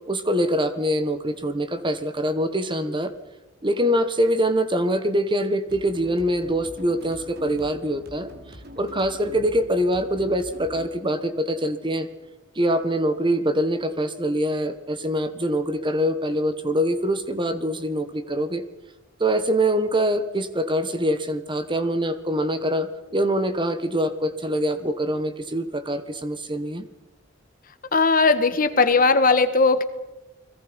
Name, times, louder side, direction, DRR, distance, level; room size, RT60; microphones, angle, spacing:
voice 1, 0.1-3.1 3.6-8.3 8.8-12.1 12.5-18.6 19.2-22.9 23.1-26.9, equal, 25° right, 10 dB, 1.5 m, -24 dB
sound 1, 5.7-12.7, equal, 55° right, 3.8 m, -45 dB
voice 2, 27.9-29.8, left 4 dB, 50° left, 10 dB, 1.5 m, -18 dB
30.0 x 21.5 x 5.4 m, 1.1 s
head